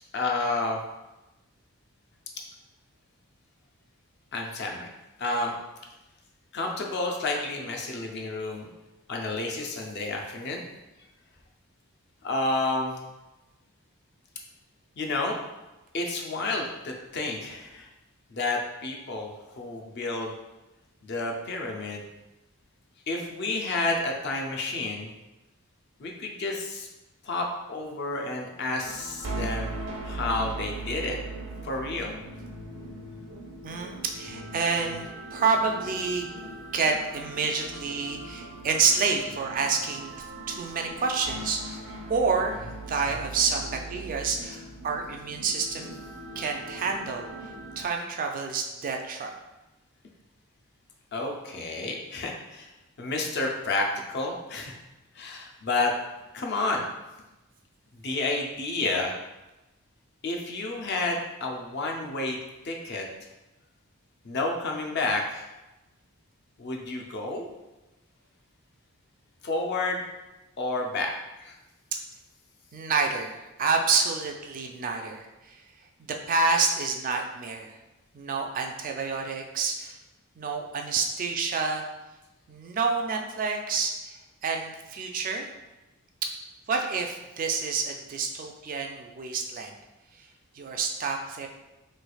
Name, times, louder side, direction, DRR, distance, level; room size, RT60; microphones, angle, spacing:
voice 1, 0.1-0.8 4.3-4.9 5.2-5.6 6.5-8.7 9.1-10.6 12.2-13.0 15.0-15.4 15.9-17.9 18.3-20.3 21.0-22.1 23.1-25.1 26.0-26.9 27.2-29.8 30.0-31.2 31.6-32.1 43.3-43.4 51.1-52.7 53.0-54.8 55.1-55.9 56.3-56.9 57.9-59.1 60.2-62.4 62.6-63.1 64.2-65.5 66.6-67.5 69.4-70.0 70.6-71.1 71.4-71.5, left 2 dB, 50° left, 1 dB, 0.5 m, -30 dB
sound 1, 28.8-47.8, right 2 dB, 85° right, 0.8 m, -39 dB
voice 2, 33.6-36.3 36.7-40.1 40.5-41.8 42.1-46.0 46.4-49.3 71.9-72.0 72.7-75.6 76.3-77.8 78.1-80.0 80.4-81.9 82.5-84.1 84.4-85.5 86.7-89.7 90.2-90.3 90.5-91.5, right 4 dB, 40° right, 3 dB, 0.3 m, -28 dB
3.2 x 3.1 x 2.3 m, 1.0 s
head